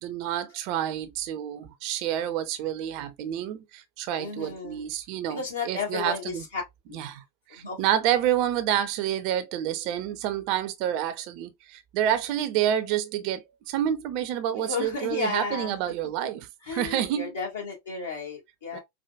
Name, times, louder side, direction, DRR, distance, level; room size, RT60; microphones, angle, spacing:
voice 1, 0.0-6.4 6.9-7.2 7.5-17.4 18.7-18.8, right 11 dB, 45° right, 0.5 m, -28 dB
voice 2, 4.2-4.8 5.3-6.6 6.9-7.0 7.5-7.8 14.6-15.8 16.7-18.8, left 4 dB, 65° left, 1.8 m, -33 dB
4.6 x 2.1 x 2.3 m
figure-of-eight pair, 90°, 0 cm